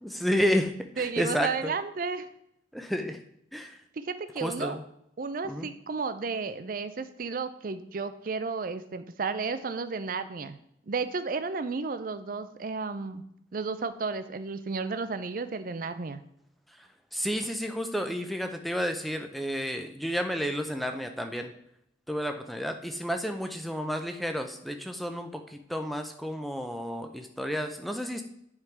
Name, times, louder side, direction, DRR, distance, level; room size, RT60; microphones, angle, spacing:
voice 1, 0.0-1.7 2.7-3.2 3.5-3.8 4.4-4.8 5.4-5.7 17.1-21.5 22.1-28.2, equal, ahead, 5 dB, 0.6 m, -31 dB
voice 2, 1.0-2.3 4.0-4.8 5.2-10.6 10.9-13.2 13.5-16.2, right 4 dB, 50° right, 11 dB, 0.5 m, -33 dB
9.7 x 3.8 x 4.5 m, 0.74 s
head